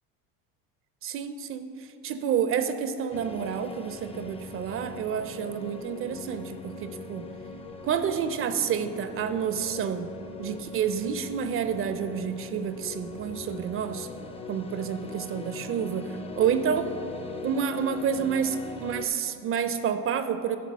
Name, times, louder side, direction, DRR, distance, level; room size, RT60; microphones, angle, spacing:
voice 1, 1.0-7.3 7.8-10.1 10.4-14.1 14.5-20.6, right 7 dB, 40° right, 10 dB, 0.4 m, -29 dB
sound 1, 3.1-19.1, left 4 dB, 20° left, 0.5 m, -41 dB
10.0 x 4.0 x 6.1 m, 3.0 s
supercardioid pair, 110°, 33 cm